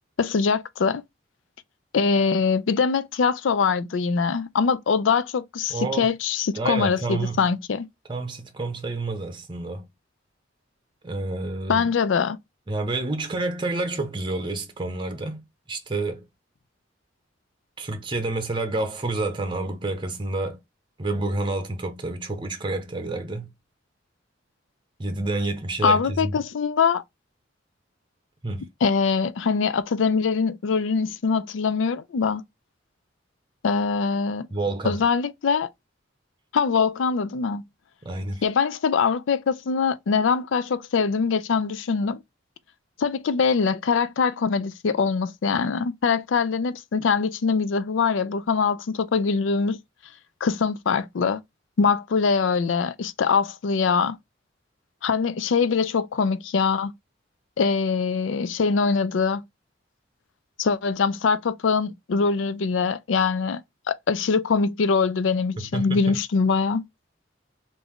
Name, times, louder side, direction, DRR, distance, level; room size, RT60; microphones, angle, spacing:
voice 1, 0.2-1.0 1.9-7.9 11.7-12.4 25.8-27.0 28.8-32.4 33.6-34.5 34.8-35.7 36.5-37.6 38.4-42.2 43.0-49.8 50.4-51.4 51.8-54.2 55.0-56.9 57.6-59.4 60.6-63.6 64.1-66.8, left 5 dB, 80° left, 0.4 m, -23 dB
voice 2, 5.7-6.1 6.5-7.4 8.1-9.8 11.0-11.9 12.7-15.4 15.7-16.2 17.8-20.6 21.0-23.5 25.0-26.3 28.4-28.7 34.5-35.0 38.0-38.4 65.6-66.2, right 2 dB, 25° right, 0.8 m, -29 dB
3.5 x 2.6 x 3.5 m
head